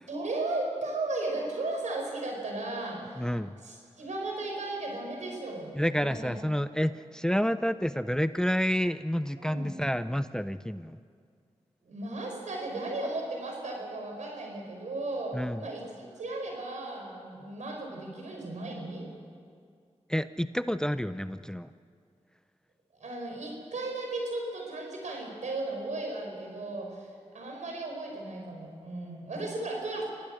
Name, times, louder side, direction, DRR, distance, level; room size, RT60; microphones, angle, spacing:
voice 1, 0.1-3.2 3.6-6.4 9.4-9.7 11.8-19.1 23.0-30.1, right 2 dB, 85° right, 1 dB, 5.2 m, -35 dB
voice 2, 3.2-3.5 5.8-11.0 15.3-15.6 20.1-21.7, equal, 5° left, 13 dB, 0.6 m, -29 dB
26.5 x 17.5 x 6.5 m, 2.2 s
cardioid pair, 45°, 12 cm